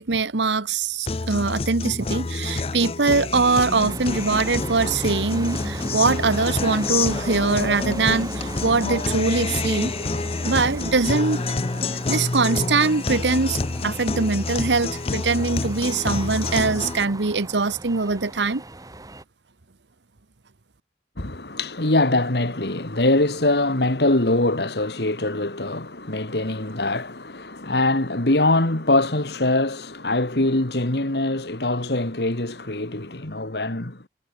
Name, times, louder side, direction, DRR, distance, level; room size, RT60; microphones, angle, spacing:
voice 1, 0.0-9.9 10.4-11.4 12.1-18.6, right 4 dB, 85° right, 1.1 m, -22 dB
Guitar, 1.1-17.0, left 3 dB, 35° left, 0.6 m, -28 dB
sound 1, 3.7-19.2, right 1 dB, 20° right, 1.1 m, -37 dB
voice 2, 21.2-34.0, left 2 dB, 65° left, 2.2 m, -23 dB
head